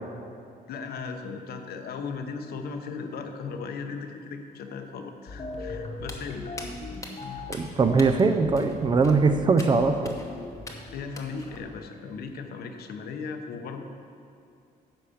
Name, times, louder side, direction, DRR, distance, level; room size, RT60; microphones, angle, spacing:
voice 1, 0.7-6.5 10.9-13.8, left 5 dB, 75° left, 5 dB, 0.9 m, -37 dB
sound 1, 5.3-12.0, left 3 dB, 40° left, 1.1 m, -40 dB
Walk footsteps, 6.0-11.6, left 2 dB, 20° left, 0.9 m, -44 dB
voice 2, 7.5-10.1, right 4 dB, 30° right, 8 dB, 0.4 m, -21 dB
10.5 x 5.0 x 6.9 m, 2.5 s
cardioid pair, 145°, 16 cm